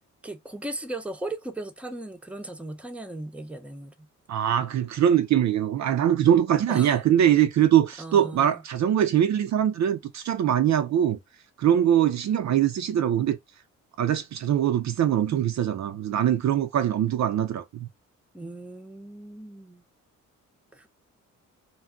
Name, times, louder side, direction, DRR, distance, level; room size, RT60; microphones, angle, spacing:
voice 1, 0.2-3.9 6.7-7.0 8.0-8.6 18.3-19.8 20.7-20.9, right 2 dB, 5° right, 0.6 m, -37 dB
voice 2, 4.3-11.2 11.6-13.4 14.0-17.9, right 10 dB, 55° right, 0.4 m, -22 dB
2.3 x 2.1 x 3.7 m
cardioid pair, 80°, 33 cm